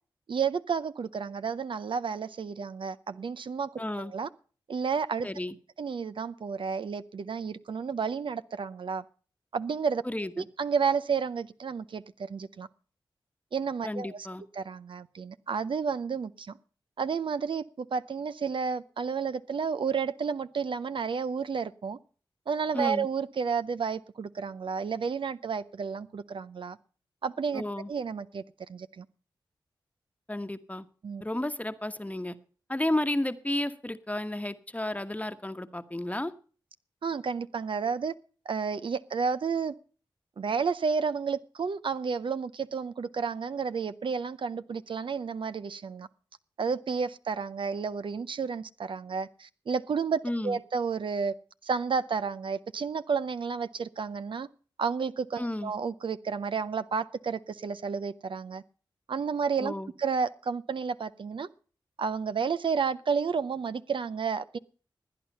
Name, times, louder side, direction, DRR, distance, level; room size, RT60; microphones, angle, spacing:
voice 1, 0.3-4.3 4.7-5.3 5.8-9.0 9.5-10.0 10.4-12.7 13.5-14.3 14.6-16.6 17.0-22.0 22.5-26.8 27.2-27.6 27.9-28.4 28.7-29.1 31.0-31.2 37.0-38.1 38.5-39.7 40.4-46.1 46.6-51.4 51.6-54.5 54.8-58.6 59.1-61.5 62.0-64.6, right 6 dB, 65° right, 0.5 m, -31 dB
voice 2, 3.8-4.1 5.2-5.6 10.0-10.5 13.8-14.4 22.7-23.1 27.5-27.9 30.3-30.9 31.2-32.4 32.7-36.3 50.2-50.6 55.4-55.7 59.6-59.9, left 1 dB, 15° left, 1.2 m, -32 dB
17.0 x 9.6 x 5.4 m
cardioid pair, 45°, 9 cm